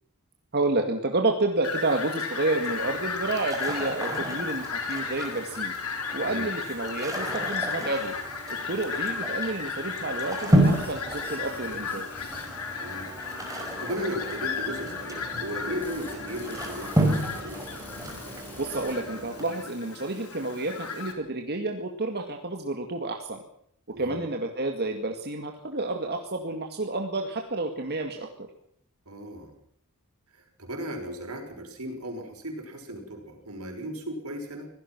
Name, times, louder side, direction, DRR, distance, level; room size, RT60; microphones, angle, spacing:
voice 1, 0.5-5.7 6.1-8.1 8.7-12.1 18.6-23.4 24.0-28.5, right 2 dB, 50° right, 3 dB, 2.1 m, -30 dB
Fowl, 1.6-21.1, left 5 dB, 85° left, 4.0 m, -35 dB
sound 1, 2.6-19.4, right 1 dB, 15° right, 5.0 m, -31 dB
sound 2, 10.6-19.0, left 1 dB, 10° left, 5.6 m, -48 dB
voice 2, 12.7-13.1 13.6-17.7 23.9-24.2 29.1-29.5 30.3-34.7, equal, 80° right, 4 dB, 5.8 m, -36 dB
25.0 x 17.5 x 6.1 m, 0.66 s
head